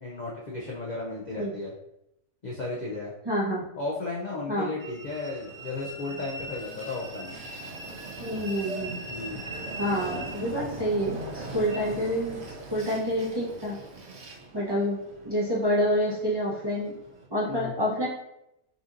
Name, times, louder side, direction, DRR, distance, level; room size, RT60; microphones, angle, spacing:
voice 1, 0.0-1.7 2.4-3.1 3.8-7.3 9.1-9.5 17.5-17.7, left 3 dB, 75° left, -4 dB, 0.4 m, -34 dB
voice 2, 3.2-3.6 4.5-4.7 8.2-9.0 9.5-12.4 12.7-13.8 14.5-16.9 17.3-18.1, equal, 25° right, -7 dB, 0.6 m, -28 dB
Train, 4.8-17.3, right 2 dB, 55° right, 0.8 m, -40 dB
5.4 x 2.8 x 2.5 m, 0.83 s
omnidirectional pair, 1.6 m